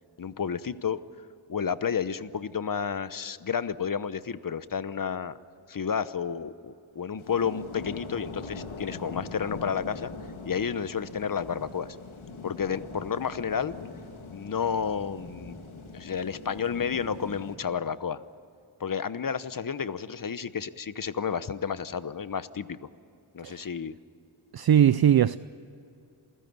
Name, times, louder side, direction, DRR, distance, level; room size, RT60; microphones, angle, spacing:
voice 1, 0.2-1.0 1.5-5.3 5.7-10.1 10.4-12.0 12.4-13.8 14.3-15.6 15.9-18.2 18.8-22.8 23.3-23.9, left 7 dB, 45° left, 0.9 m, -31 dB
sound 1, 7.2-17.6, left 3 dB, 80° left, 2.6 m, -42 dB
voice 2, 24.5-25.4, right 10 dB, 55° right, 0.5 m, -20 dB
27.5 x 16.0 x 9.5 m
wide cardioid pair, 95°, 47 cm